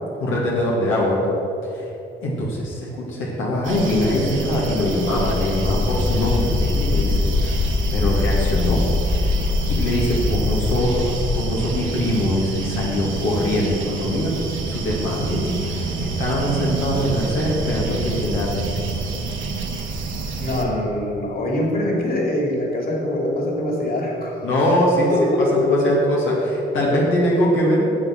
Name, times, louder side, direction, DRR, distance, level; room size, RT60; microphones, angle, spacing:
voice 1, 0.2-1.3 1.7-1.9 2.2-7.6 7.9-9.3 9.7-14.3 14.7-18.6 24.4-26.3 26.7-27.9, left 1 dB, 90° left, -4 dB, 2.0 m, -22 dB
sound 1, 3.6-20.7, right 3 dB, 75° right, 1.5 m, -28 dB
sound 2, 5.3-11.4, left 3 dB, 15° left, 0.6 m, -23 dB
voice 2, 20.4-24.5 25.1-25.8 26.3-26.4 26.8-26.9, left 1 dB, 50° left, -1 dB, 2.8 m, -23 dB
9.6 x 7.8 x 6.3 m, 2.9 s
cardioid pair, 90°, 20 cm